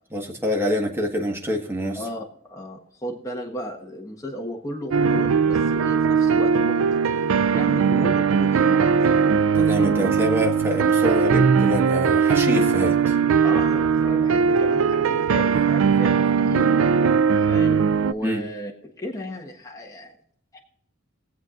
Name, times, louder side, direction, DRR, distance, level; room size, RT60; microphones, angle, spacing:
voice 1, 0.1-2.0 9.5-13.2 18.2-18.5, equal, 10° right, 1.6 m, -25 dB
voice 2, 1.9-7.0 7.5-9.0 13.4-16.7 17.5-20.1 20.5-20.6, equal, 15° left, 1.4 m, -34 dB
sound 1, 4.9-18.1, right 6 dB, 80° right, 0.4 m, -19 dB
22.0 x 7.8 x 2.5 m
head